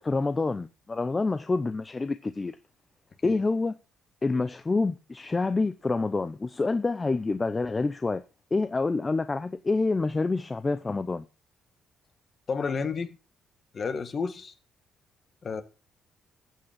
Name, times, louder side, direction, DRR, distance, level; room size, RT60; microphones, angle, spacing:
voice 1, 0.0-2.5 3.2-3.8 4.2-8.2 8.5-11.3, left 3 dB, 25° left, 0.7 m, -27 dB
voice 2, 12.5-13.2 13.7-14.5 15.4-15.6, left 5 dB, 45° left, 1.8 m, -31 dB
14.5 x 7.8 x 5.9 m
cardioid pair, 90°, 0 cm